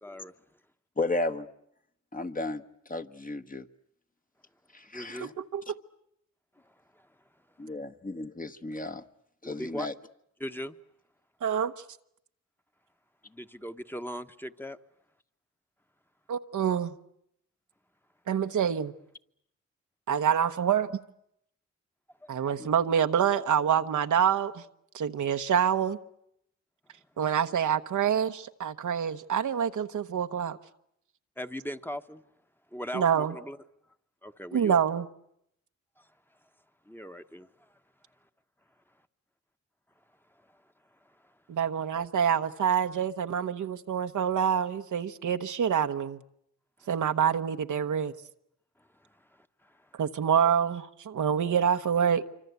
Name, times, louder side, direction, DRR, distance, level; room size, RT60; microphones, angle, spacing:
voice 1, 0.0-0.3 4.9-5.3 6.6-7.1 9.4-9.9 10.4-10.8 13.2-14.8 22.2-22.5 31.4-32.2 32.7-33.6 34.2-34.8 36.0-36.1 36.9-37.7 41.0-41.3 48.8-49.9, equal, 5° left, 1.2 m, -40 dB
voice 2, 1.0-1.5 2.1-2.6 2.9-3.6 4.7-5.3 7.6-9.0 9.4-9.9 22.6-22.7, left 2 dB, 30° left, 1.3 m, -33 dB
voice 3, 5.2-5.8 11.4-11.7 16.3-16.9 18.3-18.9 20.1-21.0 22.3-24.6 24.9-26.0 27.2-30.6 32.9-33.3 34.5-35.0 41.5-46.2 46.9-48.1 49.9-52.3, right 8 dB, 80° right, 1.1 m, -26 dB
26.0 x 25.0 x 8.2 m
cardioid pair, 60°, 30 cm